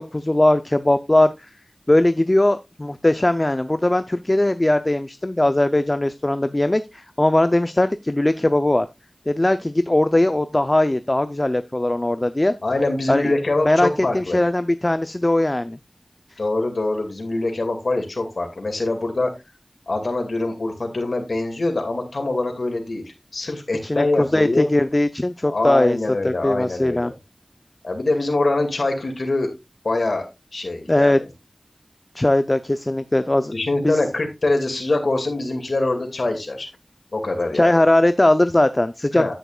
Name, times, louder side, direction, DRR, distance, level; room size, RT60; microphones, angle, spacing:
voice 1, 0.0-1.3 1.9-8.9 9.3-12.5 13.1-13.3 13.6-15.8 23.8-26.0 26.2-27.1 30.9-31.2 32.1-33.5 33.8-34.0 37.5-39.3, left 1 dB, 35° left, 10 dB, 0.6 m, -19 dB
voice 2, 12.6-14.4 16.4-19.3 19.9-23.0 23.3-24.7 25.4-27.1 27.8-29.5 29.8-30.3 30.5-31.3 33.5-36.7 37.1-37.7 39.2-39.3, left 2 dB, 85° left, 3 dB, 2.2 m, -24 dB
10.0 x 9.3 x 2.4 m, 0.23 s
wide cardioid pair, 45°, 0 cm